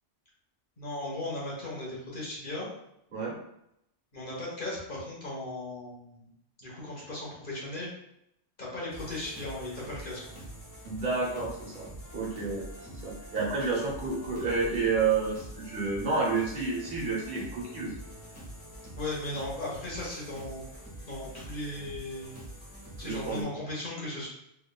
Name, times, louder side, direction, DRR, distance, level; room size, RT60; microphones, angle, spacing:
voice 1, 0.8-2.7 4.1-6.3 6.6-7.9 8.6-10.2 11.3-11.4 13.6-13.7 19.0-20.6 21.1-22.3 23.0-24.3, left 1 dB, 45° left, -5 dB, 1.3 m, -37 dB
sound 1, 8.9-23.4, right 1 dB, 15° left, 1.1 m, -45 dB
voice 2, 10.8-11.8 12.1-17.9 23.0-23.4, right 4 dB, 45° right, -3 dB, 1.1 m, -30 dB
3.5 x 3.4 x 2.2 m, 0.79 s
omnidirectional pair, 1.2 m